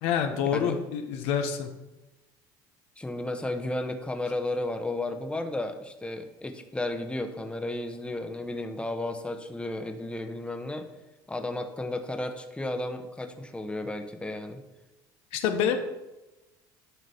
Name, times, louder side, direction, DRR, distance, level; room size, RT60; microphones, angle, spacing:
voice 1, 0.0-1.7 15.3-15.8, left 8 dB, 70° left, 6 dB, 1.1 m, -27 dB
voice 2, 3.0-10.9 11.3-14.6, left 2 dB, 10° left, 6 dB, 1.1 m, -33 dB
9.6 x 4.0 x 6.9 m, 1.0 s
hypercardioid pair, 75°, 10 cm